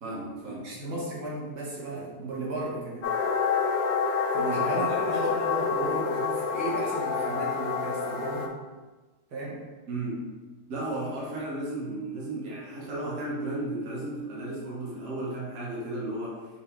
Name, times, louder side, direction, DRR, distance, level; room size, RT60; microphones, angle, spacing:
voice 1, 0.0-0.7 4.5-4.6 4.9-5.2 9.9-10.3 10.7-16.4, right 1 dB, 55° right, -5 dB, 1.3 m, -34 dB
voice 2, 0.6-3.1 4.3-8.5 9.3-9.6, right 2 dB, 75° right, -5 dB, 1.6 m, -34 dB
sound 1, 3.0-8.5, left 5 dB, 65° left, 0.7 m, -27 dB
5.7 x 2.6 x 3.2 m, 1.2 s
omnidirectional pair, 1.7 m